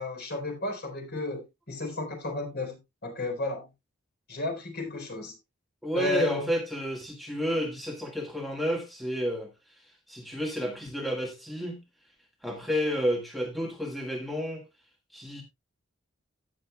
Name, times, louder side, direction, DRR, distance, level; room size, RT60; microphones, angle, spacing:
voice 1, 0.0-3.7 4.3-5.3 5.9-6.5, left 3 dB, 55° left, 4.1 m, -33 dB
voice 2, 5.8-9.5 10.1-11.8 12.4-14.6 15.1-15.4, equal, ahead, 1.5 m, -31 dB
16.5 x 6.6 x 2.2 m
head